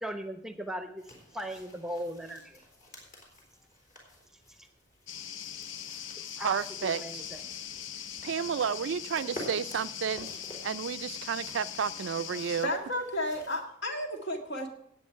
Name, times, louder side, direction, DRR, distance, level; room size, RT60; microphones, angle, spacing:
voice 1, 0.0-2.6 6.2-6.6 6.8-7.5, equal, 5° right, 0.8 m, -38 dB
sound 1, 1.0-13.6, left 1 dB, 40° left, 3.9 m, -50 dB
sound 2, 5.1-12.7, left 9 dB, 75° left, 0.6 m, -41 dB
voice 2, 6.4-7.2 8.2-12.7, right 7 dB, 70° right, 0.4 m, -32 dB
voice 3, 12.3-14.7, left 1 dB, 60° left, 2.0 m, -33 dB
16.5 x 8.6 x 4.6 m
head